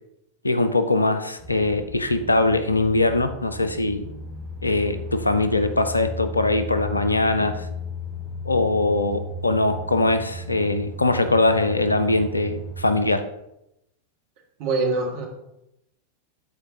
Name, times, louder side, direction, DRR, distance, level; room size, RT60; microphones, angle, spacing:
voice 1, 0.4-4.1 4.6-7.7 8.4-13.2, left 2 dB, 80° left, 11 dB, 0.5 m, -22 dB
sound 1, 1.4-13.2, equal, 25° left, 2.0 m, -35 dB
voice 2, 14.6-15.3, right 3 dB, 45° right, 0 dB, 1.8 m, -24 dB
13.0 x 4.4 x 2.8 m, 0.84 s
figure-of-eight pair, 90°, 0 cm